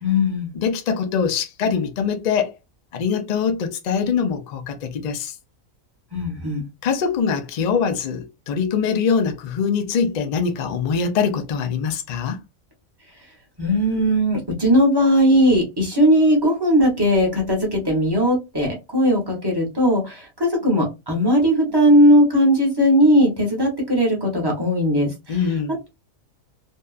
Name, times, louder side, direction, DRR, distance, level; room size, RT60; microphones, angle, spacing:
voice 1, 0.0-0.5 6.1-6.7 13.6-25.4, equal, 20° right, 0.8 m, -18 dB
voice 2, 0.5-2.5 2.9-5.3 6.8-12.4 25.3-25.8, left 6 dB, 75° left, 0.4 m, -23 dB
2.7 x 2.3 x 2.3 m
omnidirectional pair, 1.4 m